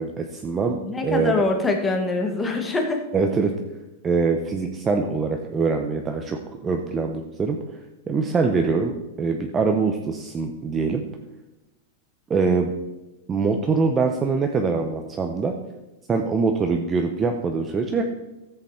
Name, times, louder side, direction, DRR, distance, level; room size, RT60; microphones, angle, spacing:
voice 1, 0.0-0.8 1.0-1.4 3.1-3.5 4.0-7.6 8.1-11.0 12.3-12.7 13.3-15.5 16.1-18.0, right 4 dB, 10° right, 4 dB, 0.5 m, -23 dB
voice 2, 0.8-3.0, left 2 dB, 10° left, 3 dB, 1.1 m, -24 dB
14.0 x 7.8 x 4.3 m, 1.0 s
supercardioid pair, 180°, 0 cm